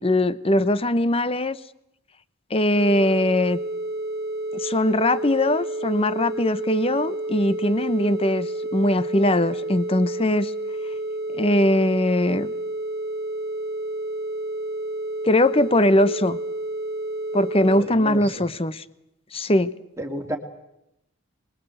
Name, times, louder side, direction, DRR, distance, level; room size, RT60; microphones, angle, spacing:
voice 1, 0.0-1.6 2.5-3.6 4.5-10.5 11.3-12.5 15.2-16.4 17.3-18.8 19.3-19.7, left 1 dB, 25° left, 15 dB, 0.8 m, -21 dB
sound 1, 2.8-17.8, right 1 dB, 45° right, 1.4 m, -30 dB
voice 2, 17.7-18.4 20.0-20.4, right 1 dB, 15° right, 3 dB, 2.6 m, -32 dB
25.0 x 21.5 x 7.8 m, 0.84 s
head